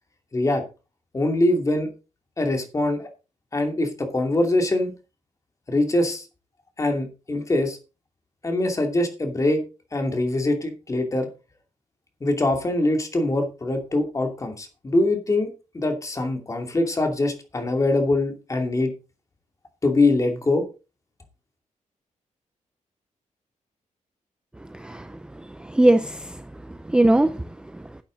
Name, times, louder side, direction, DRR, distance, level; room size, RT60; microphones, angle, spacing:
voice 1, 0.3-0.6 1.1-1.9 2.4-3.1 3.5-4.9 5.7-6.2 6.8-7.8 8.4-9.6 9.9-11.3 12.2-15.5 15.7-18.9 19.8-20.6, left 2 dB, 25° left, 2.6 m, -23 dB
voice 2, 24.7-28.0, right 1 dB, 5° right, 0.5 m, -22 dB
11.5 x 8.9 x 3.9 m
wide cardioid pair, 145°, 13 cm